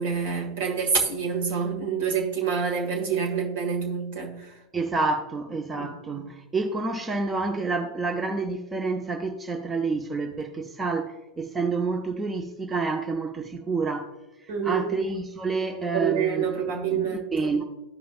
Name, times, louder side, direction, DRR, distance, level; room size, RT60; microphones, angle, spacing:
voice 1, 0.0-4.5 5.8-5.9 6.2-6.3 14.5-14.9 15.9-17.5, right 6 dB, 50° right, 2 dB, 1.8 m, -27 dB
voice 2, 4.7-14.1 14.4-16.5 16.9-17.6, right 3 dB, 15° right, 4 dB, 0.7 m, -29 dB
14.0 x 5.0 x 2.4 m, 1.0 s
figure-of-eight pair, 90°, 0 cm